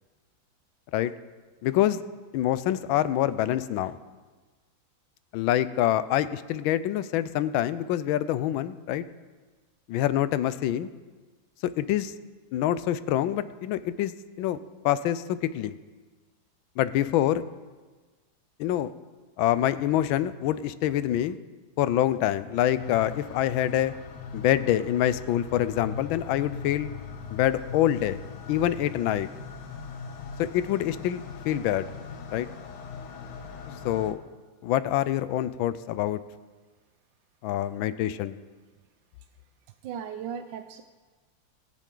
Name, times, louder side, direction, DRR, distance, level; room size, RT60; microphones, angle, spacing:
voice 1, 1.6-2.0 2.3-4.0 5.3-9.0 9.9-10.9 11.6-12.1 12.5-14.1 14.4-14.6 14.8-15.7 16.8-17.4 18.6-18.9 19.4-21.4 21.8-23.9 24.3-26.9 27.3-28.2 28.5-29.3 30.4-31.9 32.3-32.5 33.8-34.2 34.6-36.2 37.4-38.4, left 12 dB, 80° left, 14 dB, 1.3 m, -26 dB
sound 1, 22.8-34.1, left 6 dB, 60° left, 1.4 m, -40 dB
voice 2, 39.8-40.8, right 8 dB, 75° right, 8 dB, 1.2 m, -36 dB
21.5 x 7.4 x 3.9 m, 1.3 s
omnidirectional pair, 2.2 m